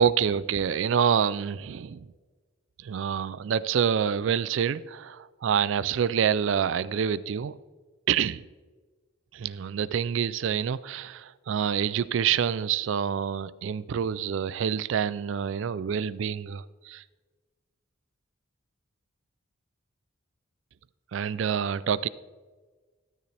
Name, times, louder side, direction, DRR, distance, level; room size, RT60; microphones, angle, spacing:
voice 1, 0.0-2.1 2.8-7.5 8.1-8.4 9.3-17.0 21.1-22.1, right 8 dB, 65° right, 0.3 m, -27 dB
13.0 x 9.4 x 3.4 m
head